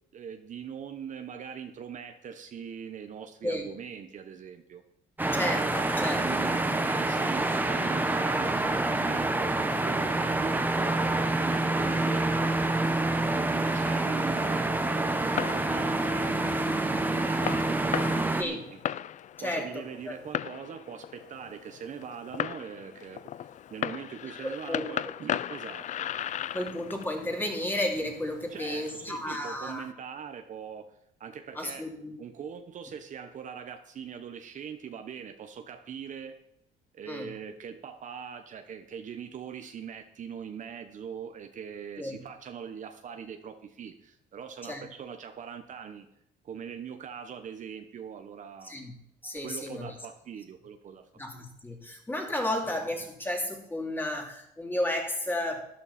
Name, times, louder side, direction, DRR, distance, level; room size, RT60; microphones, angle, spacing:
voice 1, 0.1-4.8 6.1-12.9 13.3-14.8 15.1-18.8 19.4-26.1 28.5-31.9 32.2-36.4 36.9-46.1 46.4-48.7 49.4-51.4, right 7 dB, 50° right, 7 dB, 1.1 m, -42 dB
sound 1, 5.2-18.4, right 2 dB, 10° right, 1.1 m, -27 dB
voice 2, 5.3-6.5 18.3-18.6 19.4-19.7 20.1-20.2 24.4-24.9 26.5-29.8 31.5-32.1 37.1-37.3 42.0-42.2 44.6-44.8 48.6-48.9 49.2-49.9 51.2-55.7, left 1 dB, 10° left, 1 dB, 3.0 m, -33 dB
Fireworks, 15.1-29.9, left 10 dB, 45° left, 0.4 m, -38 dB
12.5 x 11.5 x 4.3 m, 0.76 s
cardioid pair, 110°, 17 cm